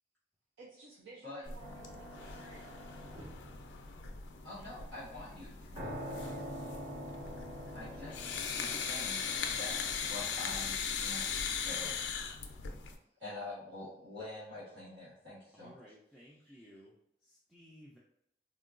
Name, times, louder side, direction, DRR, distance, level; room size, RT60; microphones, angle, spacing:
voice 1, 0.6-3.2, right 2 dB, 70° right, -5 dB, 0.5 m, -55 dB
sound 1, 1.4-13.0, left 6 dB, 90° left, 0.4 m, -39 dB
sound 2, 1.6-4.3 5.8-10.4, equal, 35° right, 0.7 m, -46 dB
voice 2, 4.4-6.2 7.7-8.2 8.6-11.2 11.6-12.1 13.2-15.8, left 2 dB, 90° right, -9 dB, 1.3 m, -46 dB
voice 3, 15.5-16.9 17.2-18.0, equal, ahead, -6 dB, 0.3 m, -57 dB
3.6 x 2.2 x 2.4 m, 0.78 s
head